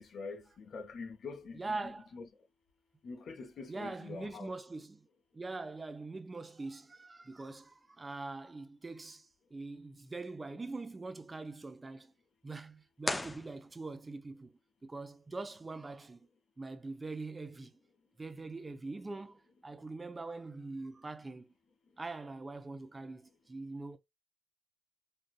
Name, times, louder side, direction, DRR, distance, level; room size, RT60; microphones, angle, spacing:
voice 1, 0.0-2.3 3.0-4.5, left 4 dB, 65° left, 0.8 m, -45 dB
voice 2, 1.6-2.1 3.7-5.1 5.3-12.1 12.4-14.5 14.8-16.3 16.6-17.7 18.2-21.5 22.0-24.0, right 3 dB, 30° right, 0.7 m, -43 dB
sound 1, 13.0-14.2, left 2 dB, 20° left, 0.4 m, -38 dB
3.8 x 2.6 x 2.4 m
supercardioid pair, 55°, 0 cm